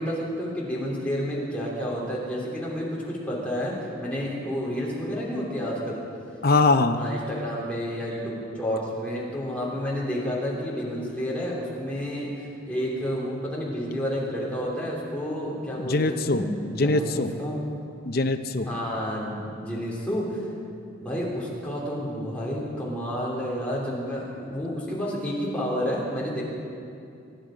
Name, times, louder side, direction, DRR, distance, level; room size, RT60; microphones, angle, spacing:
voice 1, 0.0-3.7 4.0-6.0 6.9-16.5 16.8-17.6 18.7-20.4 21.0-26.4, equal, 5° left, -6 dB, 3.2 m, -30 dB
voice 2, 6.4-7.0 15.8-16.4 16.8-17.3 18.0-18.7, left 3 dB, 45° left, 8 dB, 0.7 m, -22 dB
24.0 x 10.5 x 5.1 m, 2.5 s
head